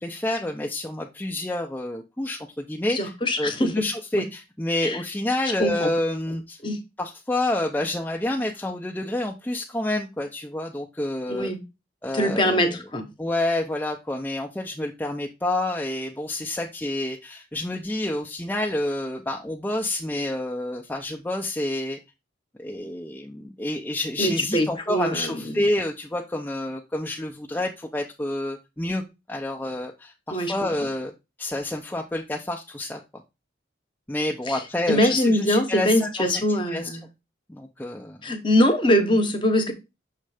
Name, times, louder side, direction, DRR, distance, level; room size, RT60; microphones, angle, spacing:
voice 1, 0.0-3.1 3.4-6.6 7.0-11.5 12.0-12.8 13.2-22.0 22.6-29.0 29.3-31.1 31.4-33.0 34.1-36.9 37.5-38.2, left 1 dB, 10° left, 0.5 m, -28 dB
voice 2, 2.9-3.9 4.1-4.2 4.8-5.0 5.6-5.9 6.6-6.8 11.3-11.6 12.1-13.1 24.2-25.6 30.3-30.5 34.5-34.6 34.9-37.0 38.2-39.7, equal, 25° left, 1.0 m, -23 dB
6.5 x 3.2 x 4.9 m
head